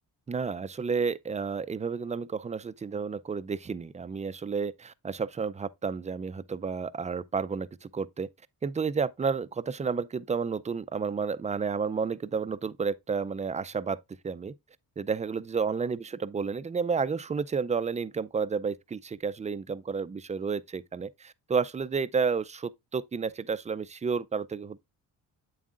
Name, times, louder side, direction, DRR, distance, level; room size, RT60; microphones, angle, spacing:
voice 1, 0.3-8.3 8.6-14.5 15.0-24.8, right 5 dB, 20° right, 0.4 m, -31 dB
8.5 x 7.4 x 2.4 m
cardioid pair, 80°, 42 cm